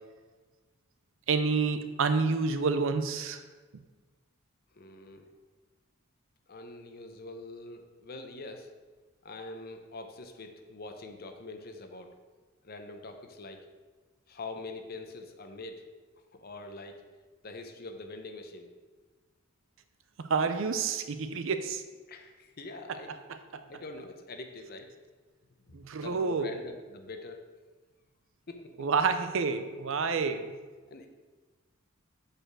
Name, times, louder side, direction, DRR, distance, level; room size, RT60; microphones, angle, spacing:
voice 1, 1.3-3.4 20.3-21.8 23.5-23.6 25.7-26.6 28.8-30.5, right 4 dB, 65° right, 9 dB, 0.5 m, -28 dB
voice 2, 4.7-5.3 6.5-8.7 9.2-12.1 12.6-13.7 14.3-15.8 16.3-17.0 17.4-18.7 22.1-23.2 23.7-25.0 25.7-27.5 28.5-28.9 30.9-31.1, left 2 dB, 50° left, 5 dB, 0.7 m, -44 dB
5.1 x 4.4 x 6.0 m, 1.3 s
head